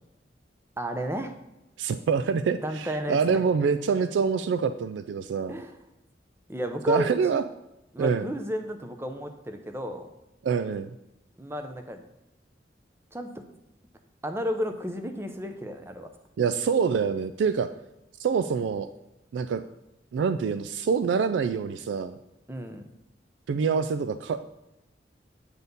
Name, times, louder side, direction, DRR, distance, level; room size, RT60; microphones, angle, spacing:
voice 1, 0.8-1.4 2.6-3.4 5.5-5.7 6.5-7.2 7.9-10.1 11.4-12.0 13.1-13.4 14.2-16.1 22.5-22.8, equal, 15° right, 6 dB, 0.6 m, -32 dB
voice 2, 1.8-5.6 6.9-7.4 8.0-8.3 10.4-10.9 16.4-17.7 18.2-18.9 19.3-19.6 20.1-22.2 23.5-24.5, right 6 dB, 85° right, 11 dB, 0.3 m, -26 dB
8.1 x 4.2 x 5.3 m, 0.91 s
head